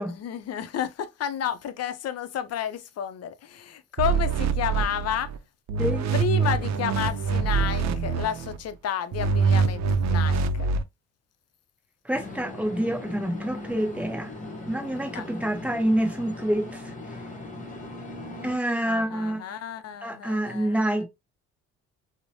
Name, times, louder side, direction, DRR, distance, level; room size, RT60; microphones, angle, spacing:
voice 1, 0.2-5.3 6.1-10.7 15.1-15.6 15.8-15.9 18.8-21.0, left 9 dB, 55° left, 0.5 m, -31 dB
sound 1, 4.0-5.4 5.7-8.6 9.1-10.8, right 5 dB, 65° right, 0.5 m, -24 dB
sound 2, 12.1-18.6, left 2 dB, 25° left, 0.8 m, -39 dB
voice 2, 12.1-14.3 14.7-16.7 18.4-19.4 20.0-21.1, right 1 dB, 5° right, 0.8 m, -27 dB
2.9 x 2.1 x 2.6 m
cardioid pair, 90°, 30 cm